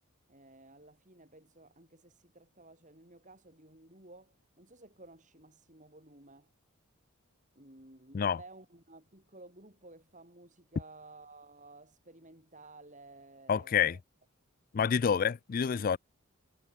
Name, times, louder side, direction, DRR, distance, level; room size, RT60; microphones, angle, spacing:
voice 1, 0.3-6.5 7.5-14.0, right 2 dB, 35° right, 8.0 m, -55 dB
voice 2, 13.5-14.0 14.7-16.0, left 7 dB, 40° left, 0.3 m, -28 dB
head